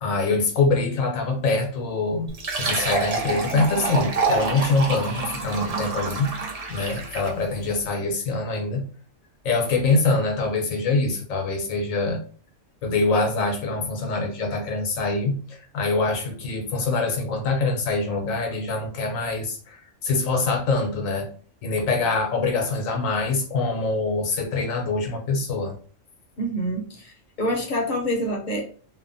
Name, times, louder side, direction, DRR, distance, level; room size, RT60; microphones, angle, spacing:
voice 1, 0.0-2.3 2.6-6.3 6.7-8.9 9.4-12.2 12.8-21.3 21.6-25.7, left 3 dB, 85° left, 2 dB, 1.2 m, -24 dB
Fill (with liquid), 2.3-7.4, right 4 dB, 60° right, 0.4 m, -27 dB
voice 2, 26.4-28.6, equal, 45° left, 1 dB, 0.7 m, -27 dB
2.9 x 2.1 x 2.5 m, 0.42 s
omnidirectional pair, 1.4 m